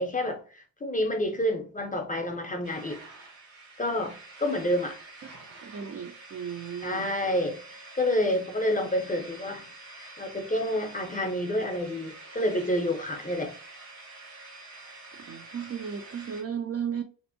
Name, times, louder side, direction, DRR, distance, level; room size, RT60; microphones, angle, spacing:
voice 1, 0.0-3.0 3.8-5.0 6.8-7.6 7.9-9.7 10.0-13.5, left 1 dB, 20° left, 0.6 m, -29 dB
sound 1, 2.6-16.4, right 2 dB, 80° right, 1.1 m, -47 dB
voice 2, 5.6-7.1 15.1-17.0, right 7 dB, 35° right, 0.4 m, -35 dB
2.6 x 2.1 x 2.6 m
cardioid pair, 80°, 42 cm